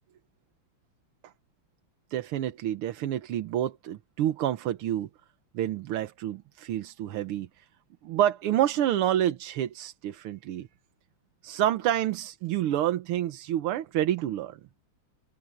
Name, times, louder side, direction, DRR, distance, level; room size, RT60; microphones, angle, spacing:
voice 1, 2.1-5.1 5.5-7.7 8.0-10.7 11.4-14.6, right 12 dB, 85° right, 1.8 m, -28 dB
omnidirectional pair, 2.3 m